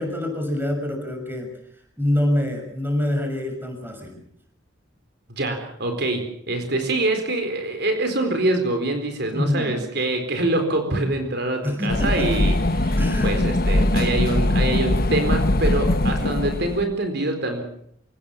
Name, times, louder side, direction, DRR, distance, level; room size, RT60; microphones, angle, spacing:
voice 1, 0.0-1.5 2.0-4.2 9.3-9.8 11.6-12.3 13.0-13.4 16.2-16.4, left 1 dB, 10° right, 3 dB, 6.5 m, -25 dB
voice 2, 5.3-17.6, right 2 dB, 55° right, 6 dB, 4.3 m, -25 dB
sound 1, 11.9-16.9, left 1 dB, 50° left, 1.3 m, -21 dB
27.5 x 18.0 x 7.2 m, 0.69 s
head